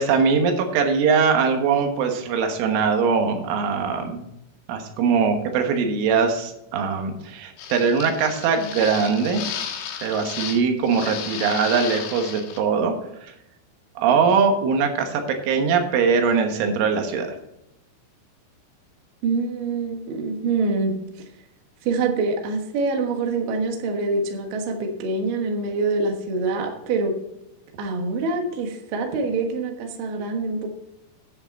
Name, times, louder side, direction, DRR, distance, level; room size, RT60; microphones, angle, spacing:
voice 1, 0.0-4.2 4.7-9.4 10.0-13.0 14.0-17.3, right 5 dB, 80° right, 5 dB, 3.7 m, -21 dB
sound 1, 7.6-10.6 10.9-12.6, left 8 dB, 75° left, 3.6 m, -33 dB
voice 2, 19.2-21.0 21.8-27.2 27.8-30.7, right 3 dB, 65° right, 3 dB, 2.4 m, -25 dB
9.9 x 8.0 x 4.1 m, 0.84 s
omnidirectional pair, 5.6 m